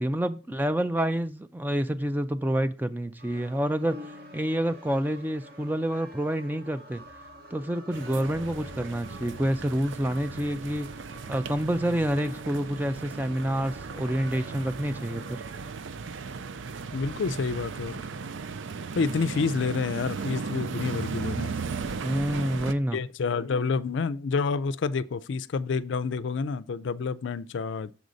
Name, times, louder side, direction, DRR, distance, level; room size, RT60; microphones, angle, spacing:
voice 1, 0.0-7.1 7.5-10.9 11.3-15.4 22.0-23.0, right 1 dB, 10° right, 0.3 m, -28 dB
sound 1, 3.2-15.7, equal, 50° right, 1.2 m, -47 dB
sound 2, 7.9-22.7, right 5 dB, 70° right, 0.5 m, -36 dB
voice 2, 16.9-18.0 18.9-21.5 22.9-27.9, left 4 dB, 70° left, 0.4 m, -28 dB
7.0 x 4.0 x 6.3 m
head